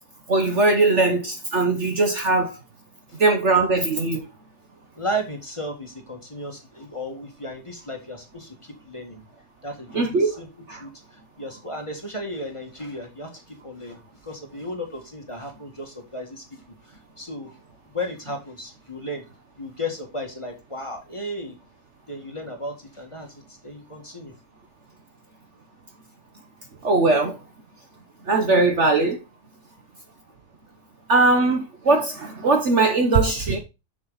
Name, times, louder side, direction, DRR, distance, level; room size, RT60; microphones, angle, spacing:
voice 1, 0.3-2.6 3.2-4.3 9.9-10.3 10.7-10.8 26.8-27.4 28.3-29.2 31.1-33.6, right 3 dB, 50° right, 1.3 m, -20 dB
voice 2, 5.0-9.2 9.6-16.4 16.8-17.5 17.9-19.2 19.6-21.6 22.1-24.3, equal, 20° left, 1.8 m, -34 dB
6.9 x 6.9 x 4.0 m
omnidirectional pair, 1.7 m